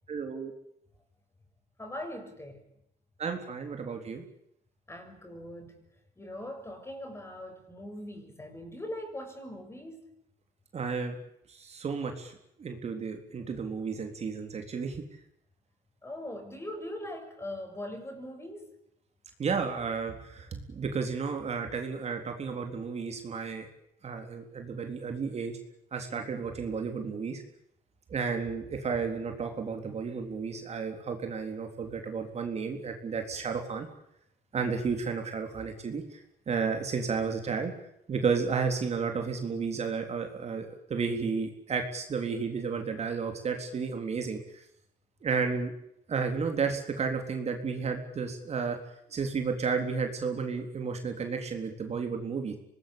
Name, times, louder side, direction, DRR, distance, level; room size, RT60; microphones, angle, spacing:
voice 1, 0.1-0.5 3.2-4.2 10.7-11.2 11.5-12.3 12.6-15.0 19.4-23.7 24.0-25.5 25.9-27.4 28.1-33.9 34.5-36.2 36.5-37.7 38.1-44.4 45.2-45.7 46.1-48.8 49.1-52.5, right 5 dB, 40° right, 4 dB, 3.8 m, -32 dB
voice 2, 1.8-2.6 4.9-5.7 6.2-10.0 16.0-18.7, left 1 dB, 15° left, 5 dB, 7.4 m, -41 dB
26.0 x 20.0 x 8.8 m, 0.77 s
cardioid pair, 110°, 17 cm